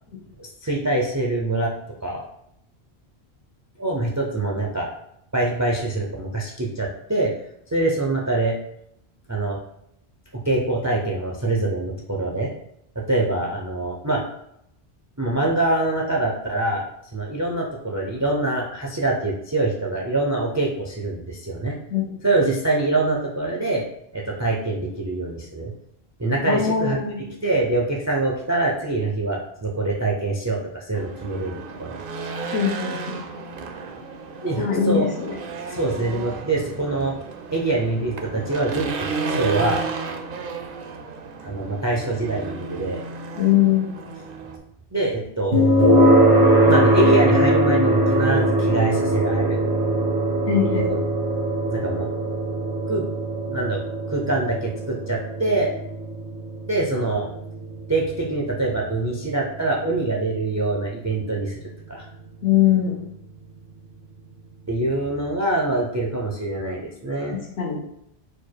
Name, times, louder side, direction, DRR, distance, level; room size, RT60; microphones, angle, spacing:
voice 1, 0.4-1.7 2.0-2.2 3.8-4.9 5.3-7.3 7.7-8.6 9.3-9.6 10.3-12.5 13.0-14.2 15.2-16.9 17.1-21.7 22.2-23.8 24.1-25.7 26.2-32.0 34.4-35.1 35.7-37.2 37.5-39.8 41.4-43.0 44.9-45.6 46.6-49.6 50.6-51.0 51.7-52.1 52.9-53.1 53.5-55.8 56.7-57.3 57.9-61.6 61.9-62.1 64.7-67.4, right 2 dB, 25° right, -1 dB, 0.4 m, -24 dB
voice 2, 26.5-27.2 32.5-33.2 34.6-35.3 43.4-43.9 50.5-50.9 62.4-63.0 67.6-67.8, left 9 dB, 80° left, -3 dB, 1.1 m, -21 dB
Race car auto racing / Engine, 30.9-44.6, right 4 dB, 65° right, 0.7 m, -33 dB
sound 1, 45.5-60.5, right 1 dB, 80° right, 1.2 m, -21 dB
4.3 x 2.3 x 4.5 m, 0.76 s
omnidirectional pair, 1.1 m